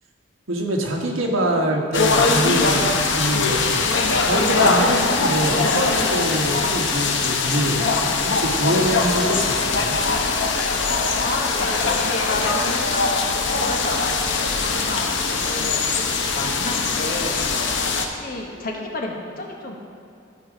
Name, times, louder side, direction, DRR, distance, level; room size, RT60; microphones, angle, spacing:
voice 1, 0.5-10.0, right 1 dB, 90° right, 1 dB, 1.3 m, -25 dB
sound 1, 1.9-18.1, left 4 dB, 65° left, 0.8 m, -21 dB
voice 2, 11.2-13.1 13.4-17.4 17.7-19.8, left 2 dB, 45° left, 1 dB, 1.1 m, -31 dB
13.5 x 5.0 x 5.0 m, 2.7 s
head